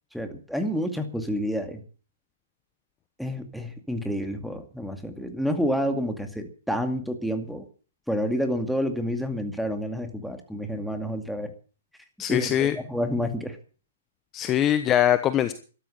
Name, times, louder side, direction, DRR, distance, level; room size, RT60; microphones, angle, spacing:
voice 1, 0.1-1.8 3.2-7.7 8.1-11.5 12.3-13.6, equal, ahead, 5 dB, 2.2 m, -29 dB
voice 2, 12.2-12.8 14.3-15.5, left 11 dB, 25° left, 11 dB, 1.0 m, -22 dB
13.0 x 12.5 x 7.0 m, 0.39 s
hypercardioid pair, 140°, 0 cm